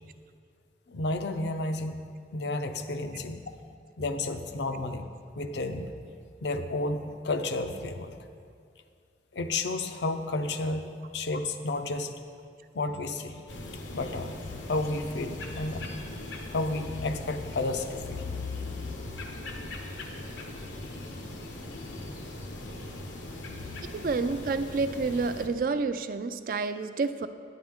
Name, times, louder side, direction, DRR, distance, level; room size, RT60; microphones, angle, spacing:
voice 1, 0.9-3.4 4.0-5.1 5.4-5.9 6.4-8.1 9.3-12.2 12.7-13.4 13.9-14.4 14.7-15.9 16.5-18.3, left 2 dB, 70° left, 7 dB, 0.5 m, -31 dB
sound 1, 13.5-25.5, left 1 dB, 90° left, 1.0 m, -40 dB
voice 2, 23.9-27.3, right 4 dB, 50° right, 11 dB, 0.3 m, -29 dB
9.4 x 9.2 x 3.6 m, 2.2 s
head